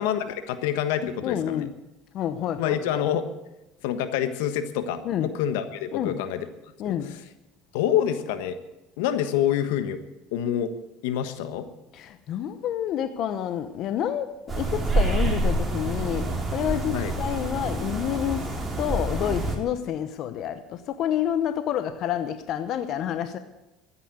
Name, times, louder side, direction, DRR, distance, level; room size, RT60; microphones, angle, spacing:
voice 1, 0.0-1.7 2.6-3.3 3.8-6.5 6.8-6.9 7.7-8.6 9.0-10.0 10.3-10.7 11.0-11.7 16.9-17.1, left 10 dB, 85° left, 10 dB, 1.2 m, -26 dB
voice 2, 1.2-1.7 2.1-3.0 5.0-5.3 5.9-6.2 6.8-7.2 11.9-14.3 14.6-23.4, left 10 dB, 55° left, 11 dB, 0.9 m, -29 dB
sound 1, 14.5-19.5, right 2 dB, 20° right, 3.9 m, -27 dB
13.5 x 10.0 x 8.1 m, 0.99 s
supercardioid pair, 110°, 0 cm